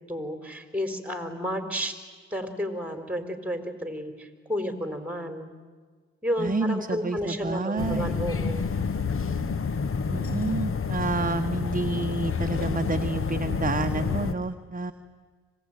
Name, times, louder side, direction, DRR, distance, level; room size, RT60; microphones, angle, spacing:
voice 1, 0.1-2.0 2.3-5.5 6.2-8.8, equal, 5° right, 7 dB, 4.3 m, -32 dB
voice 2, 6.4-8.2 10.1-14.9, right 3 dB, 30° right, 7 dB, 1.2 m, -29 dB
sound 1, 7.8-14.3, left 5 dB, 45° left, 1.2 m, -28 dB
25.5 x 19.0 x 9.2 m, 1.5 s
supercardioid pair, 45°, 29 cm